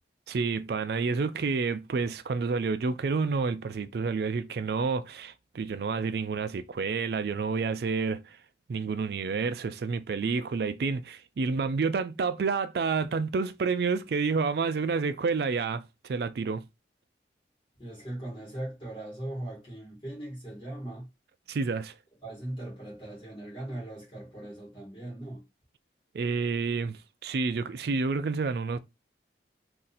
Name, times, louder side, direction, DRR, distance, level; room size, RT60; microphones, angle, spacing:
voice 1, 0.3-8.4 8.7-16.6 21.5-21.9 26.1-28.8, right 4 dB, 60° right, 0.3 m, -29 dB
voice 2, 17.8-21.1 22.2-25.4, right 1 dB, 25° left, 1.3 m, -39 dB
2.7 x 2.6 x 3.9 m
head